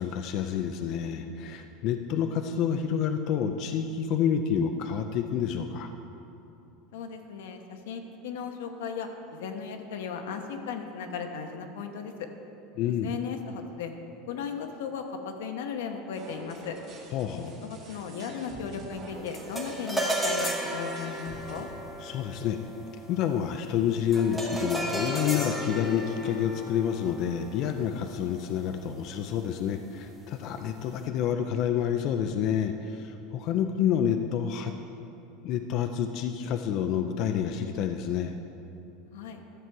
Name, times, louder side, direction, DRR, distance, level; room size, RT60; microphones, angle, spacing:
voice 1, 0.0-5.9 12.7-13.1 17.1-17.5 22.0-22.6 23.1-34.7 35.4-38.3, left 8 dB, 35° left, 6 dB, 0.4 m, -28 dB
voice 2, 6.9-12.3 13.0-13.9 14.3-16.8 17.4-21.7 39.1-39.4, left 6 dB, 85° left, 5 dB, 1.0 m, -36 dB
sound 1, 16.1-21.6, right 2 dB, 35° right, 1.9 m, -47 dB
sound 2, 19.3-28.8, right 1 dB, ahead, 1.1 m, -34 dB
12.5 x 7.6 x 4.6 m, 2.8 s
supercardioid pair, 175°, 0 cm